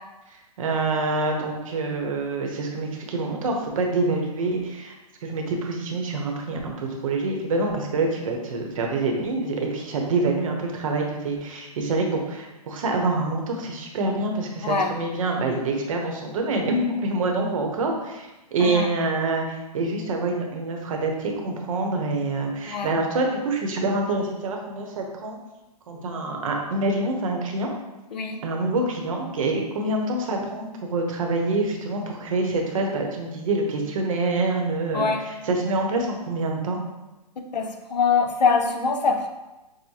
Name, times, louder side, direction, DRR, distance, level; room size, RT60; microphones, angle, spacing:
voice 1, 0.3-4.9 5.2-25.4 25.9-27.7 28.4-36.8, right 2 dB, 55° right, 1 dB, 0.8 m, -26 dB
voice 2, 14.6-14.9 18.6-18.9 22.7-22.9 28.1-28.4 34.9-35.2 37.5-39.3, left 5 dB, 85° left, 5 dB, 0.7 m, -23 dB
6.3 x 2.1 x 2.8 m, 1.0 s
hypercardioid pair, 160°, 21 cm